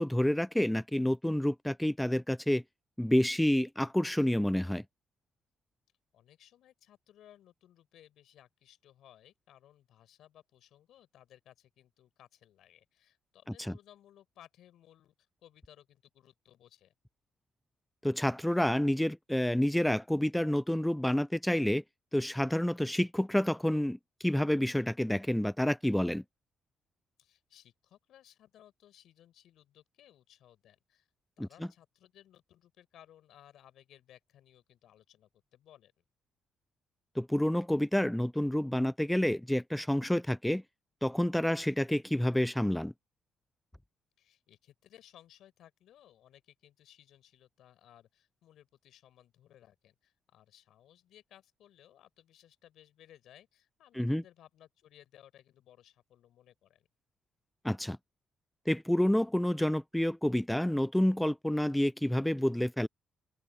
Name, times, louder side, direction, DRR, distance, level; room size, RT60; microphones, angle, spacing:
voice 1, 0.0-2.6 3.0-4.8 13.7-13.8 18.0-21.8 22.1-26.2 31.4-31.5 37.2-40.6 41.0-42.9 54.0-54.2 57.6-58.0 58.7-62.9, left 1 dB, 5° left, 0.4 m, -29 dB
voice 2, 6.1-15.1 15.4-16.9 27.2-31.1 31.4-35.9 44.2-56.9, left 11 dB, 80° left, 5.4 m, -60 dB
cardioid pair, 135°, 0 cm